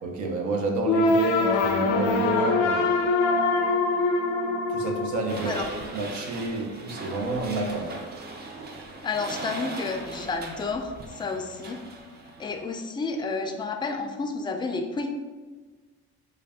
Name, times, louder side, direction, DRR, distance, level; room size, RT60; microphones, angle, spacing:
voice 1, 0.0-2.9 4.7-8.0, right 2 dB, 75° right, 1 dB, 0.7 m, -29 dB
sound 1, 0.9-5.9, left 3 dB, 90° left, 0.5 m, -24 dB
sound 2, 5.3-12.6, right 2 dB, 35° right, 0.5 m, -39 dB
voice 2, 9.0-11.8 12.4-15.1, left 4 dB, 15° left, 5 dB, 0.3 m, -30 dB
3.2 x 2.4 x 3.4 m, 1.4 s
cardioid pair, 90°, 30 cm